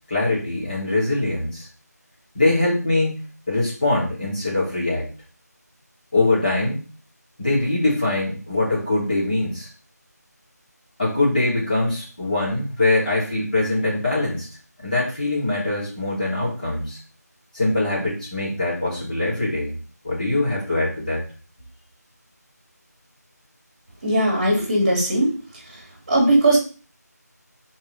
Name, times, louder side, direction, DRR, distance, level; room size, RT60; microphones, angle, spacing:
voice 1, 0.1-1.7 2.3-5.1 6.1-6.8 7.4-9.7 11.0-14.5 14.8-17.0 17.5-19.8 20.0-21.3, left 2 dB, 25° left, -8 dB, 3.3 m, -23 dB
voice 2, 24.0-25.3 26.1-26.6, right 1 dB, 30° right, -3 dB, 2.8 m, -18 dB
4.8 x 4.5 x 5.4 m, 0.37 s
figure-of-eight pair, 175°, 9 cm